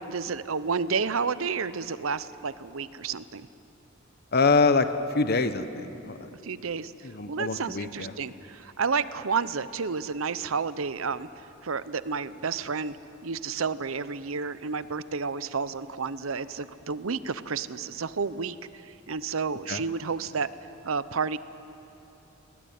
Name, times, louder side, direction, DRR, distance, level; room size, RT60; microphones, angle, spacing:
voice 1, 0.0-3.5 6.4-11.3 11.6-13.0 13.2-20.5 20.8-21.4, right 5 dB, 75° right, 15 dB, 0.7 m, -31 dB
voice 2, 4.3-6.3 7.0-8.2 19.7-19.8, left 4 dB, 50° left, 11 dB, 1.1 m, -25 dB
22.0 x 19.5 x 9.3 m, 3.0 s
head